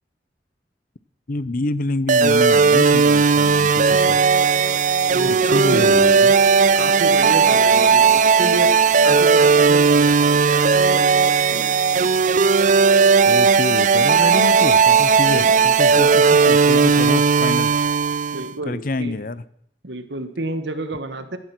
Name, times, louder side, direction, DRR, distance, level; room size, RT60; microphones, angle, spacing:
voice 1, 1.3-4.2 5.2-6.3 13.2-17.7 18.7-19.4, left 2 dB, 50° left, 18 dB, 0.7 m, -27 dB
sound 1, 2.1-18.5, right 5 dB, 45° right, 0.5 m, -16 dB
sound 2, 4.4-11.0, equal, ahead, 4.4 m, -46 dB
voice 2, 5.1-6.0 6.7-8.7 9.0-11.2 11.5-11.7 15.3-15.7 18.3-19.2 19.8-21.4, right 2 dB, 90° right, 10 dB, 1.7 m, -30 dB
16.5 x 13.0 x 6.1 m, 0.68 s
head